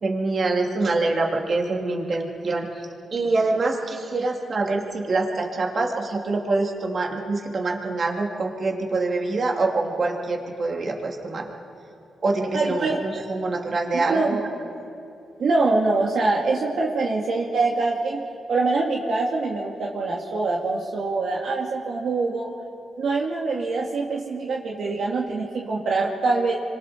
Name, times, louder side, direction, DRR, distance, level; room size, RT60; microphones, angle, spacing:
voice 1, 0.0-11.5 12.2-14.5, right 3 dB, 50° right, 1 dB, 2.8 m, -25 dB
voice 2, 12.5-13.0 14.1-14.3 15.4-18.2 18.5-22.5 23.0-26.6, right 3 dB, 65° right, -2 dB, 2.2 m, -24 dB
27.0 x 25.0 x 4.4 m, 2.6 s
cardioid pair, 80°, 0 cm